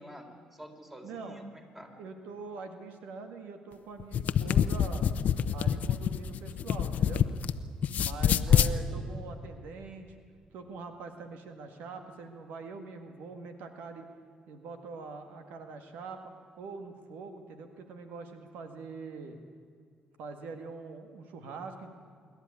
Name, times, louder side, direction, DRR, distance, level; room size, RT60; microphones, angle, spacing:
voice 1, 0.0-1.4 1.8-1.9 8.5-9.1, equal, 10° right, 3 dB, 3.8 m, -48 dB
voice 2, 1.0-1.4 2.0-5.1 5.5-7.3 8.0-10.2 10.5-14.1 14.5-16.2 16.6-19.4 20.2-21.9, right 4 dB, 85° right, 6 dB, 1.8 m, -43 dB
sound 1, 4.0-7.5 7.8-8.7, left 9 dB, 65° left, 0.8 m, -26 dB
26.0 x 11.5 x 9.6 m, 2.1 s
cardioid pair, 80°, 3 cm